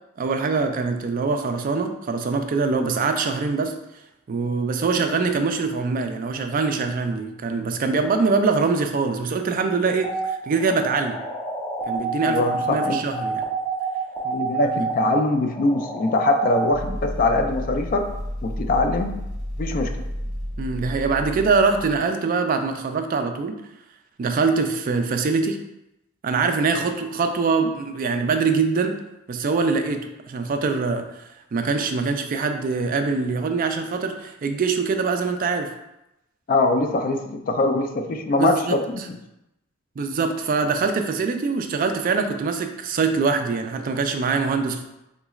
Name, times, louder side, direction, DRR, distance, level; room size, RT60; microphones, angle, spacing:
voice 1, 0.2-3.7 4.3-11.2 11.9-13.4 14.8-14.9 20.6-23.6 24.2-25.6 26.2-28.9 29.3-31.2 31.5-35.7 38.4-38.8 40.0-44.8, right 4 dB, 40° right, 6 dB, 0.3 m, -23 dB
sound 1, 9.9-16.7, right 2 dB, 10° left, 0.7 m, -29 dB
voice 2, 12.2-13.0 14.2-18.1 18.4-19.1 19.6-19.9 36.5-38.8 39.1-39.2, left 2 dB, 40° left, 5 dB, 0.3 m, -22 dB
sound 2, 16.7-22.0, equal, 20° right, 0.7 m, -31 dB
3.8 x 3.0 x 2.3 m, 0.89 s
head